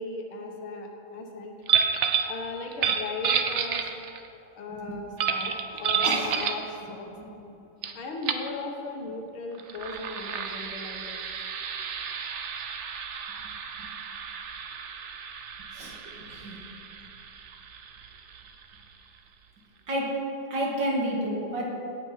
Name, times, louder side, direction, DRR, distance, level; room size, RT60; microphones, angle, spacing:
voice 1, 0.0-1.5 2.2-3.8 4.5-5.5 5.8-7.1 7.9-11.2, left 3 dB, 90° left, 2 dB, 2.2 m, -37 dB
sound 1, 1.7-2.3 2.7-4.3 5.2-6.7 7.8-7.9 8.2-8.5 9.5-18.8, right 7 dB, 80° right, 0.6 m, -30 dB
voice 2, 6.0-6.4 7.2-7.3 13.8-13.9 15.7-16.6 19.9-20.1 20.5-21.7, right 1 dB, 60° right, -3 dB, 2.7 m, -31 dB
17.0 x 6.3 x 5.6 m, 2.9 s
omnidirectional pair, 2.2 m